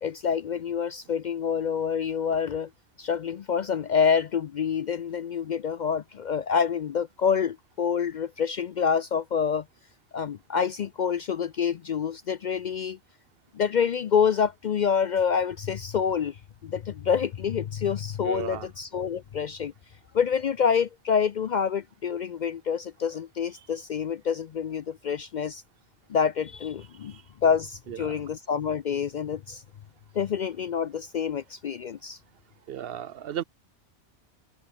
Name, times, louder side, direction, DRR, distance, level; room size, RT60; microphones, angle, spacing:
voice 1, 0.0-2.7 3.0-9.6 10.1-13.0 13.5-16.4 16.6-19.7 20.1-25.6 26.1-27.2 27.4-29.6 30.1-32.2, left 7 dB, 55° left, 0.5 m, -27 dB
voice 2, 18.2-18.7 27.1-27.2 27.9-28.2 32.7-33.4, right 10 dB, 65° right, 0.8 m, -35 dB
omnidirectional pair, 1.2 m